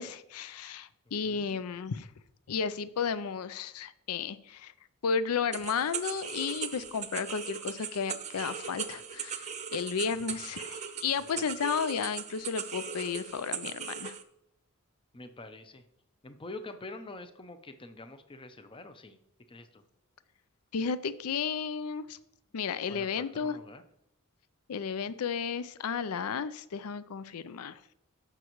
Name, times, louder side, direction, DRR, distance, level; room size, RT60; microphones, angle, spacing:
voice 1, 0.0-2.1 2.5-4.7 5.0-14.2 20.7-22.2 22.5-23.6 24.7-27.8, left 6 dB, 75° left, 15 dB, 0.5 m, -33 dB
voice 2, 1.1-1.6 11.4-11.6 15.1-15.8 16.2-19.2 19.5-19.8 22.9-23.8, left 2 dB, 25° left, 9 dB, 0.6 m, -46 dB
sound 1, 5.5-14.2, right 7 dB, 30° right, 0.7 m, -39 dB
14.5 x 6.0 x 3.0 m, 0.80 s
head